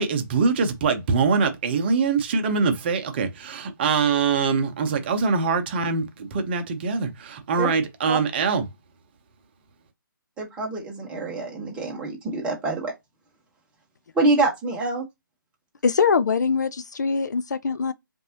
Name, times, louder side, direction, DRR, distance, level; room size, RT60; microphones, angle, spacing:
voice 1, 0.0-8.6, right 5 dB, 30° right, 0.9 m, -23 dB
voice 2, 10.4-12.9 14.1-15.1, right 3 dB, 10° right, 1.2 m, -25 dB
voice 3, 15.8-17.9, left 5 dB, 55° left, 0.4 m, -22 dB
5.1 x 2.7 x 2.9 m
figure-of-eight pair, 140°, 11 cm